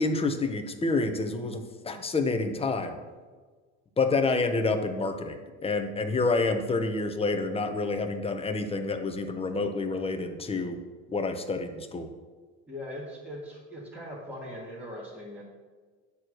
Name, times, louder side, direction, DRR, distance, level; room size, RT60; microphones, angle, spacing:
voice 1, 0.0-2.9 4.0-10.8 11.1-12.1, left 3 dB, 15° left, 6 dB, 1.0 m, -28 dB
voice 2, 12.7-15.4, left 1 dB, 5° right, -6 dB, 2.0 m, -40 dB
9.6 x 4.4 x 6.4 m, 1.4 s
supercardioid pair, 90°, 34 cm